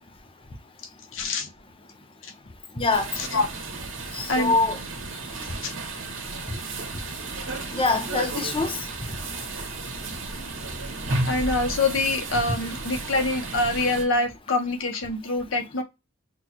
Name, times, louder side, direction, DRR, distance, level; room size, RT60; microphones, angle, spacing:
voice 1, 1.1-1.5 2.2-2.3 3.2-3.5 4.3-4.5 5.6-5.8 7.7-7.8 11.2-15.8, left 2 dB, 70° left, 0.9 m, -25 dB
voice 2, 2.8-3.1 4.1-4.8 7.7-8.8, left 3 dB, 25° left, 0.8 m, -24 dB
sound 1, 2.9-14.0, right 2 dB, 70° right, 1.6 m, -33 dB
6.1 x 2.3 x 2.9 m
head